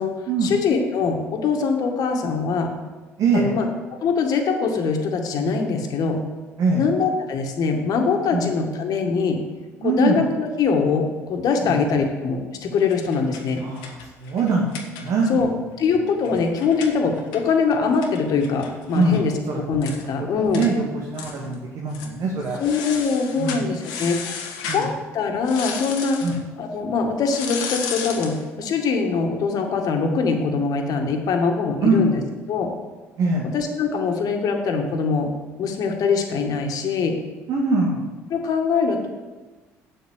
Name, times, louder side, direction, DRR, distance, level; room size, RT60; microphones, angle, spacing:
voice 1, 0.4-2.7 3.3-3.7 4.0-6.2 6.7-9.4 9.8-13.6 15.3-15.5 15.8-20.6 22.6-24.2 24.7-26.2 26.6-32.2 32.5-32.7 33.5-35.3 35.6-37.2 38.3-39.1, left 5 dB, 55° left, 3 dB, 1.9 m, -23 dB
voice 2, 3.2-3.6 6.6-6.9 8.3-8.4 9.8-10.2 11.7-11.8 13.6-14.7 14.9-15.4 16.3-16.4 18.9-19.2 19.5-19.6 20.5-22.6 23.4-23.6 24.7-24.9 26.2-26.4 31.8-32.1 33.2-33.5 37.5-38.0, right 3 dB, 55° right, -2 dB, 2.0 m, -22 dB
sound 1, 12.8-15.4 15.7-15.8 16.1-19.2 19.5-19.6 19.8-20.1 20.5-20.7 21.2-21.6 21.9-22.1 22.6-24.9 25.4-26.4 27.3-28.4, left 6 dB, 70° left, 1.4 m, -34 dB
7.8 x 7.8 x 8.1 m, 1.3 s
hypercardioid pair, 60°, 7 cm